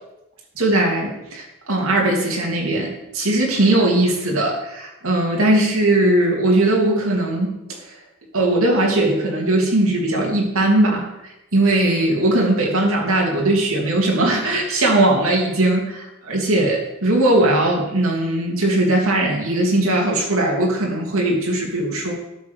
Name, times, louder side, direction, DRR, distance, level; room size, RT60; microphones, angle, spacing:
voice 1, 0.6-8.0 8.3-22.1, right 1 dB, 70° right, -2 dB, 2.8 m, -19 dB
12.5 x 7.1 x 6.6 m, 0.92 s
head